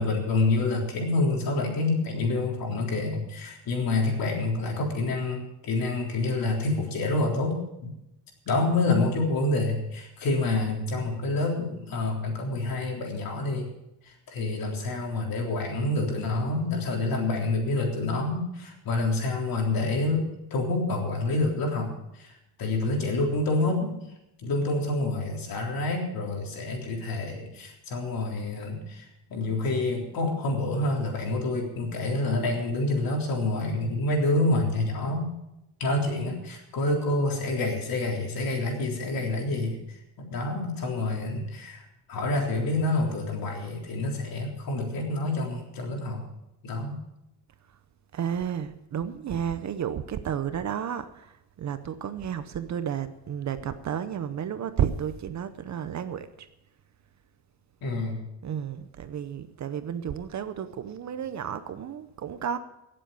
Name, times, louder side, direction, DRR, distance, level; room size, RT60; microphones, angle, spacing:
voice 1, 0.0-7.9 8.5-13.7 14.1-22.3 22.6-24.0 24.4-35.3 35.8-46.2 46.6-47.0 57.8-58.3, left 2 dB, 55° left, 0 dB, 3.7 m, -27 dB
voice 2, 48.1-56.5 58.4-62.6, right 8 dB, 40° right, 11 dB, 0.8 m, -32 dB
17.5 x 7.7 x 6.9 m, 0.87 s
cardioid pair, 150°, 42 cm